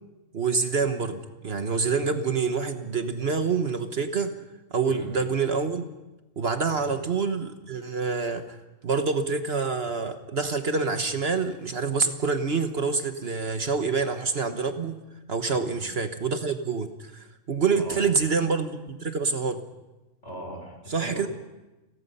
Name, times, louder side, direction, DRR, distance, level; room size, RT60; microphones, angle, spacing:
voice 1, 0.3-4.4 4.7-5.9 6.4-8.6 8.8-15.0 15.3-19.6 20.9-21.3, right 4 dB, 50° right, 7 dB, 1.5 m, -27 dB
voice 2, 20.2-21.3, equal, 60° left, 2 dB, 6.2 m, -40 dB
29.5 x 19.5 x 5.6 m, 1.1 s
omnidirectional pair, 1.3 m